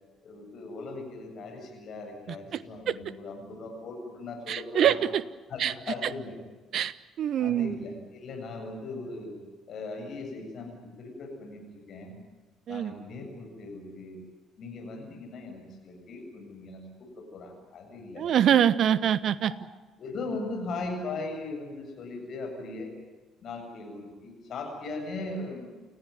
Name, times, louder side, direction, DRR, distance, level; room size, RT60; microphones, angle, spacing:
voice 1, 0.2-5.0 5.5-6.3 7.4-9.4 9.7-12.2 12.7-14.2 14.6-18.2 19.4-19.5 20.0-22.9 23.4-25.6, left 3 dB, 50° left, 3 dB, 7.9 m, -39 dB
voice 2, 4.5-5.2 5.6-5.7 6.0-6.1 6.7-7.7 12.7-12.9 18.2-19.5, right 9 dB, 55° right, 18 dB, 1.0 m, -24 dB
29.5 x 15.5 x 9.5 m, 1.3 s
figure-of-eight pair, 50°, 0 cm